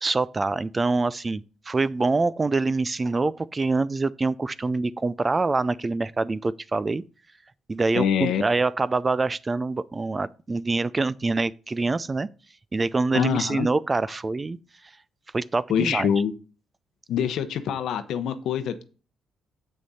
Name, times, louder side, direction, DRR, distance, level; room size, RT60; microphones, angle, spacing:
voice 1, 0.0-7.0 7.7-12.3 12.7-14.6 15.3-16.1, right 3 dB, 25° right, 0.4 m, -25 dB
voice 2, 7.9-8.4 13.1-13.7 15.7-16.3 17.1-18.8, left 8 dB, 75° left, 0.8 m, -25 dB
7.6 x 6.1 x 4.1 m
cardioid pair, 90°, 0 cm